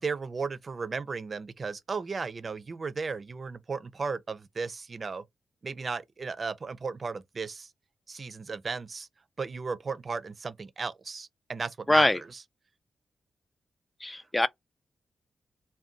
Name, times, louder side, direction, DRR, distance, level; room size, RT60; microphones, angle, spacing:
voice 1, 0.0-5.2 5.6-7.7 8.1-9.1 9.4-12.4 14.1-14.2, right 4 dB, 50° right, 0.4 m, -35 dB
voice 2, 11.9-12.2 14.0-14.5, left 1 dB, 20° left, 0.3 m, -23 dB
2.5 x 2.2 x 3.6 m
cardioid pair, 55°, 0 cm